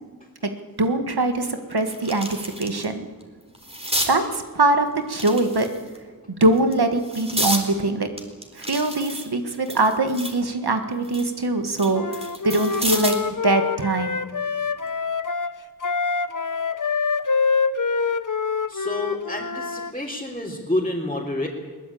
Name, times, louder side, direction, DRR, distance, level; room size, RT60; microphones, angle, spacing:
sound 1, 0.8-0.9 1.4-2.9 3.2-4.1 5.1-6.0 6.6-7.7 8.2-10.4 10.8-13.3 14.7-14.9, equal, 15° right, 3.8 m, -30 dB
voice 1, 0.8-3.1 4.1-5.7 6.3-8.1 8.6-12.1 12.4-14.2, right 2 dB, 85° right, 7 dB, 1.7 m, -22 dB
Wind instrument woodwind instrument, 11.9-19.9, left 5 dB, 55° left, 0.9 m, -26 dB
voice 2, 18.7-21.5, left 1 dB, 15° left, -5 dB, 3.6 m, -28 dB
21.5 x 19.0 x 8.6 m, 1.4 s
wide cardioid pair, 50°, 38 cm